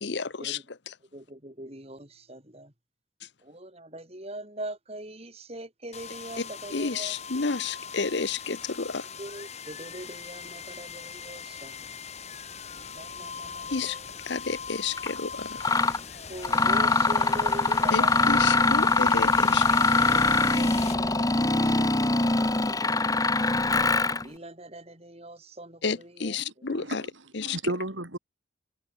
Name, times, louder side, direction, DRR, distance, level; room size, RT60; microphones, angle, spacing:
voice 1, 0.0-1.0 3.2-3.3 6.4-6.5 6.7-9.1 13.7-14.0 14.2-15.6 16.1-16.2 17.9-19.8 25.8-27.0 27.3-27.6, left 4 dB, 55° left, 0.9 m, -31 dB
voice 2, 1.1-2.7 3.5-7.1 9.2-11.7 13.0-13.9 16.3-18.2 19.1-19.2 20.1-21.9 22.4-23.3 24.2-25.8 26.2-26.3, right 1 dB, 30° right, 4.7 m, -42 dB
sound 1, 5.9-21.8, left 5 dB, 35° left, 2.7 m, -40 dB
Mechanisms, 15.0-15.1 15.6-16.0 16.4-24.2, left 3 dB, 15° left, 1.2 m, -23 dB
voice 3, 26.4-27.1 27.4-28.2, right 1 dB, 70° right, 3.6 m, -33 dB
head